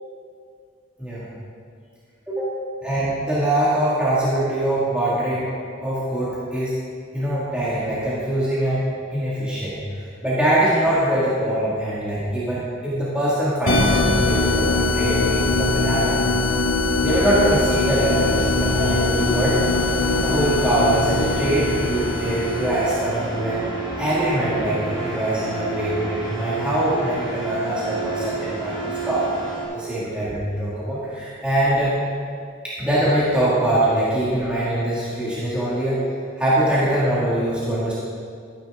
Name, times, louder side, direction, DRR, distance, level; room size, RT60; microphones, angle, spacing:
voice 1, 2.8-5.5 5.8-6.8 7.1-8.9 9.1-16.2 17.0-19.5 20.2-23.6 24.0-29.3 29.7-31.9 32.6-36.0 36.4-38.0, right 1 dB, 5° right, -10 dB, 1.9 m, -23 dB
sound 1, 13.7-23.0, left 2 dB, 85° left, 1.3 m, -21 dB
sound 2, 17.3-29.6, right 3 dB, 25° right, 2.3 m, -31 dB
13.0 x 9.6 x 3.6 m, 2.2 s
head